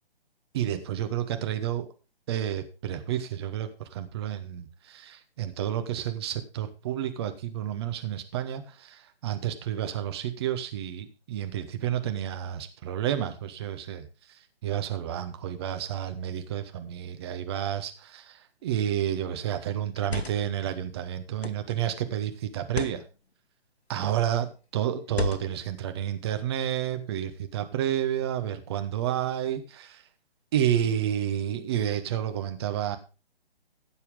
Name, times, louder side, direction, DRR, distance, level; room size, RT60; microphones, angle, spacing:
voice 1, 0.5-1.9 2.3-14.1 14.6-23.0 23.9-30.0 30.5-33.0, right 10 dB, 25° right, 8 dB, 1.0 m, -30 dB
sound 1, 18.7-19.0 19.9-20.6 21.4-21.8 22.6-23.0 23.9-24.3 25.1-25.7, left 4 dB, 90° left, 0.9 m, -34 dB
15.0 x 7.0 x 3.7 m, 0.32 s
figure-of-eight pair, 140°, 31 cm